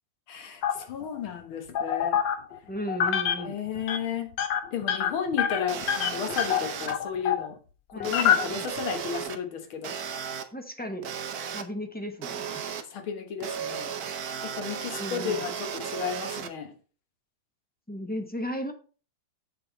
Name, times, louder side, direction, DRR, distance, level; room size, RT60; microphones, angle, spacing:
voice 1, 0.3-2.2 3.4-4.3 4.7-7.6 8.0-10.0 12.9-13.9 14.4-16.7, left 7 dB, 90° left, 6 dB, 2.2 m, -33 dB
sound 1, 0.6-1.2 1.8-2.6 2.9-3.5 3.8-4.0 4.3-7.5 8.0-9.0, left 9 dB, 70° left, 1.6 m, -26 dB
voice 2, 2.7-3.5 7.9-8.1 8.5-8.6 10.5-11.1 11.5-12.7 14.8-15.4 17.9-18.7, equal, 10° left, 4 dB, 0.6 m, -35 dB
sound 2, 5.7-7.0 8.0-9.4 9.8-10.4 11.0-11.6 12.2-12.8 13.4-16.5, right 8 dB, 60° right, 1.2 m, -35 dB
7.7 x 7.6 x 4.0 m, 0.38 s
omnidirectional pair, 2.2 m